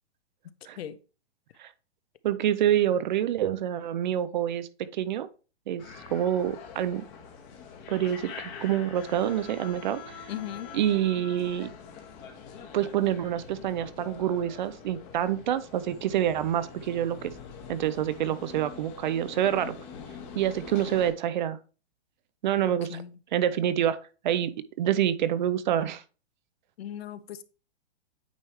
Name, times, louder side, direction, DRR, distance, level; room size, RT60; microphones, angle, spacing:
voice 1, 2.2-5.3 5.7-5.8 6.1-7.0 7.9-10.3 10.7-11.7 12.7-17.3 17.7-19.8 20.3-21.6 22.4-23.0 23.3-24.0 24.2-24.5 24.8-26.0, right 10 dB, 45° right, 0.5 m, -27 dB
sound 1, 5.8-21.1, left 6 dB, 30° left, 1.2 m, -44 dB
voice 2, 10.3-10.7 22.7-23.2 26.8-27.4, left 10 dB, 65° left, 0.7 m, -38 dB
9.0 x 3.2 x 3.2 m
hypercardioid pair, 150°, 33 cm